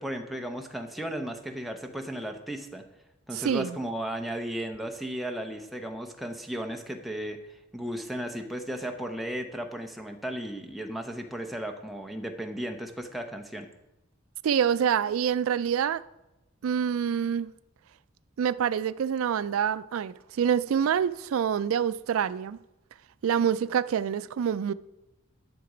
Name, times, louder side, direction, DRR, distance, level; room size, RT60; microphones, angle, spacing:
voice 1, 0.0-2.8 3.3-7.4 7.7-13.7, right 1 dB, ahead, 0.8 m, -35 dB
voice 2, 3.3-3.7 14.4-16.0 16.6-17.5 18.4-22.6 23.2-24.7, right 8 dB, 90° right, 0.4 m, -26 dB
11.0 x 6.7 x 5.0 m
head